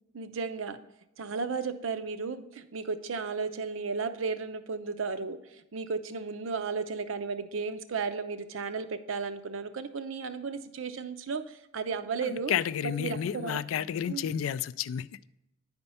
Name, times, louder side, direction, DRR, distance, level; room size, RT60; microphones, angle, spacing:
voice 1, 0.1-0.8 1.2-12.6 13.0-13.6 14.1-14.4, right 5 dB, 70° right, 0.6 m, -34 dB
voice 2, 12.2-15.2, left 9 dB, 80° left, 0.3 m, -31 dB
9.6 x 4.4 x 5.5 m
head